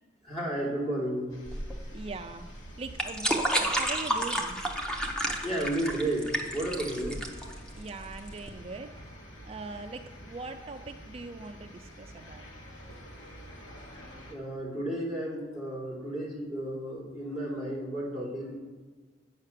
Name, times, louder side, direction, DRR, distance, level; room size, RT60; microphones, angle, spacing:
voice 1, 0.2-1.3 5.4-7.2 14.3-18.6, right 1 dB, 35° left, -5 dB, 3.0 m, -32 dB
sound 1, 1.3-14.3, equal, 90° left, 1.7 m, -49 dB
sound 2, 1.5-8.5, right 1 dB, 5° left, 0.8 m, -31 dB
voice 2, 1.9-2.5 2.8-4.7 7.7-8.9 9.4-12.5 16.0-16.1, right 3 dB, 30° right, 7 dB, 0.3 m, -41 dB
8.4 x 5.7 x 6.7 m, 1.3 s
head